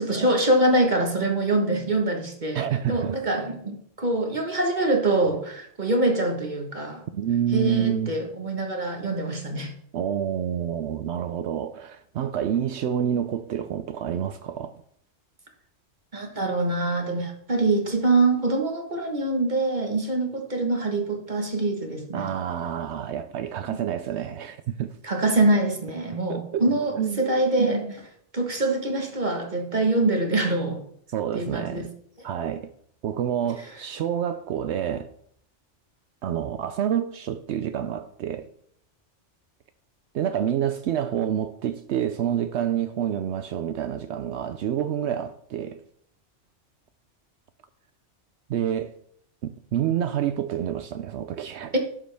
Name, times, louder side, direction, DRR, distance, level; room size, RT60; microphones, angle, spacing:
voice 1, 0.0-7.0 7.5-9.7 16.1-22.3 23.7-23.8 25.0-28.0 28.3-30.8 31.3-31.8 51.7-51.8, right 2 dB, 40° right, 1.4 m, -24 dB
voice 2, 2.5-3.2 7.1-8.1 9.9-14.8 22.1-24.9 26.3-26.7 27.0-27.2 31.1-31.9 32.2-32.7 33.0-35.1 36.2-38.5 40.1-45.8 48.5-48.9 49.4-51.7, right 9 dB, 70° right, 0.8 m, -28 dB
11.0 x 7.6 x 3.4 m
omnidirectional pair, 1.2 m